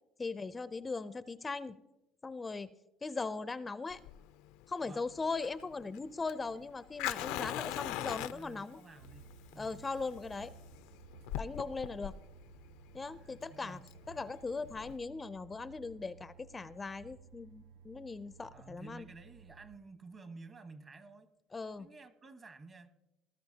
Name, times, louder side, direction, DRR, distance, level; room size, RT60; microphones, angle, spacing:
voice 1, 0.2-1.8 2.2-2.7 3.0-4.0 4.7-8.8 9.6-10.5 11.4-12.1 12.9-13.8 14.1-19.1 21.5-21.9, left 4 dB, 20° left, 14 dB, 0.4 m, -39 dB
Fire, 3.9-15.0, left 14 dB, 85° left, 0.4 m, -42 dB
voice 2, 7.8-9.8 13.0-13.9 18.5-21.3 21.8-22.9, right 3 dB, 35° right, 9 dB, 1.2 m, -53 dB
sound 1, 9.0-19.8, right 6 dB, 85° right, 0.6 m, -57 dB
18.5 x 12.5 x 2.8 m, 0.98 s
supercardioid pair, 95°, 0 cm